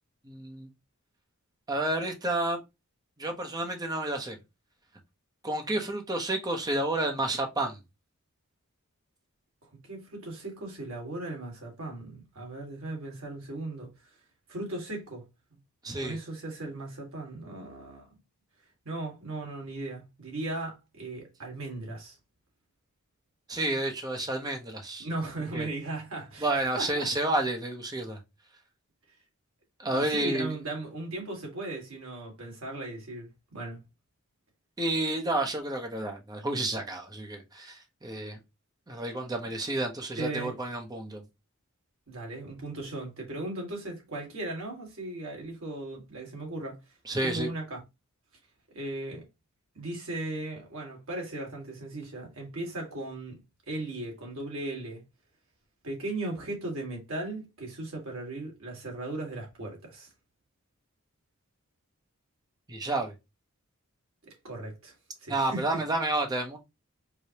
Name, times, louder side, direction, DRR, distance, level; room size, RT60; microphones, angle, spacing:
voice 1, 0.2-0.7 1.7-2.6 3.2-4.4 5.4-7.8 15.8-16.2 23.5-25.1 25.5-25.7 26.4-28.2 29.8-30.5 34.8-38.4 38.9-41.2 47.1-47.5 62.7-63.1 65.3-66.6, right 2 dB, 15° right, 0.6 m, -30 dB
voice 2, 9.8-13.9 14.5-15.2 16.0-18.1 18.8-22.2 25.0-27.1 29.9-33.8 40.2-40.6 42.1-46.8 47.2-47.8 48.7-49.2 49.7-53.4 53.7-55.0 55.8-60.1 64.3-64.9 65.2-65.8, right 2 dB, 65° right, 1.5 m, -37 dB
4.8 x 2.0 x 2.7 m
head